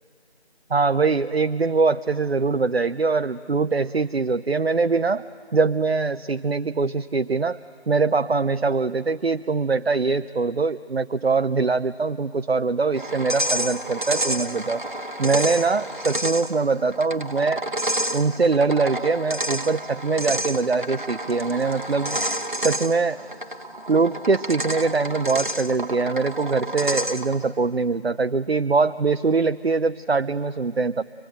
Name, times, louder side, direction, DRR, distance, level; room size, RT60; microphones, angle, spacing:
voice 1, 0.7-5.2 5.5-7.6 7.9-14.8 15.2-17.6 18.1-22.2 22.6-23.2 23.9-31.0, right 4 dB, 65° right, 9 dB, 0.6 m, -23 dB
sound 1, 12.9-27.4, right 1 dB, 50° right, 1.2 m, -29 dB
25.0 x 20.5 x 8.9 m, 2.2 s
figure-of-eight pair, 175°, 33 cm